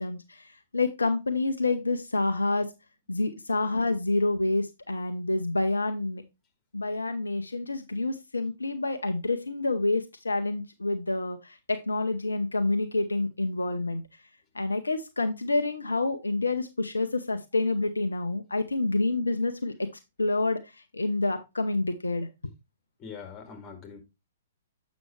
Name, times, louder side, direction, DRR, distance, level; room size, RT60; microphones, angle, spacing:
voice 1, 0.0-2.7 3.1-6.2 6.7-14.0 14.5-19.9 20.2-22.3, left 2 dB, 80° left, 0.7 m, -28 dB
voice 2, 23.0-24.0, left 6 dB, 25° left, 2.1 m, -42 dB
7.5 x 6.1 x 3.1 m
figure-of-eight pair, 115°, 0 cm